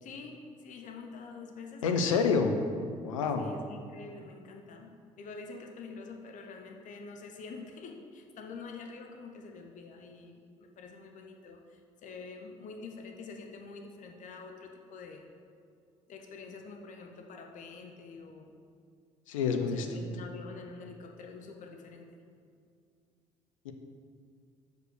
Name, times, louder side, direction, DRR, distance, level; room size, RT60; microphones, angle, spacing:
voice 1, 0.0-2.5 3.4-15.3 16.1-18.5 19.6-22.1, left 4 dB, 50° left, 3 dB, 0.8 m, -46 dB
voice 2, 1.8-2.5 3.0-3.5 19.3-19.9 23.6-23.7, left 5 dB, 85° left, 6 dB, 0.6 m, -27 dB
6.1 x 5.2 x 6.7 m, 2.3 s
hypercardioid pair, 55°, 16 cm